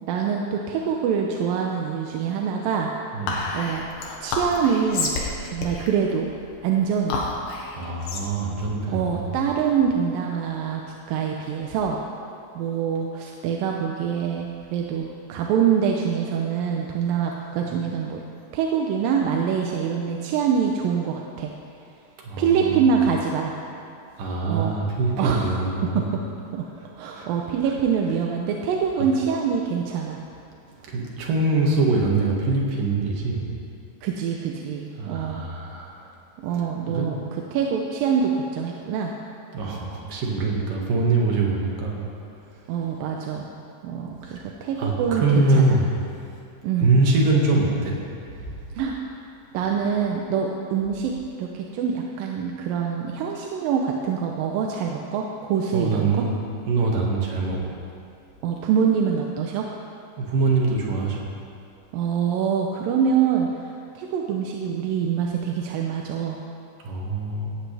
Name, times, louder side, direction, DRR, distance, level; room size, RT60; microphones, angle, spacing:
voice 1, 0.0-2.9 3.5-3.8 4.2-5.1 5.4-6.3 6.6-7.2 8.9-10.8 11.1-12.0 12.6-18.2 18.5-21.5 22.4-23.5 24.5-24.8 25.2-25.5 26.5-26.7 27.0-30.2 34.0-35.4 36.4-37.2 37.5-39.1 42.7-43.5 43.8-45.8 46.6-46.9 48.7-49.0 49.5-56.1 58.4-59.7 61.9-66.4, right 7 dB, 90° right, 1 dB, 2.6 m, -25 dB
Whispering, 3.3-9.9, left 3 dB, 80° left, 3.1 m, -31 dB
voice 2, 7.8-9.4 17.6-17.7 22.2-23.0 24.2-26.1 27.0-27.3 27.6-27.7 30.9-33.5 35.0-36.1 36.6-37.1 39.5-42.1 42.5-42.7 44.2-45.9 46.1-46.3 46.8-48.0 48.4-48.5 55.7-56.3 56.7-57.8 60.2-61.3 66.8-67.5, right 3 dB, 75° right, -2 dB, 3.5 m, -24 dB
17.0 x 14.5 x 3.4 m, 2.5 s
omnidirectional pair, 3.9 m